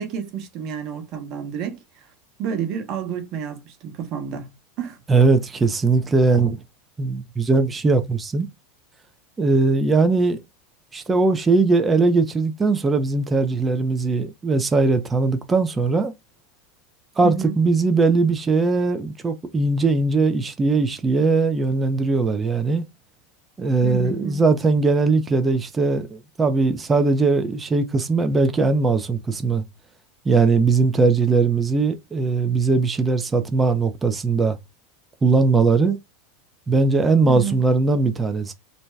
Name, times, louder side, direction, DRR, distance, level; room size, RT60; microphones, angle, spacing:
voice 1, 0.0-2.1 2.4-5.0 17.2-17.5 23.8-24.4 37.3-37.6, right 7 dB, 50° right, 1.1 m, -30 dB
voice 2, 5.1-6.6 7.0-8.5 9.4-10.4 10.9-16.1 17.2-22.8 23.6-29.6 30.3-34.6 35.2-36.0 36.7-38.5, right 3 dB, 20° right, 0.6 m, -20 dB
2.6 x 2.2 x 3.2 m
hypercardioid pair, 100°, 0 cm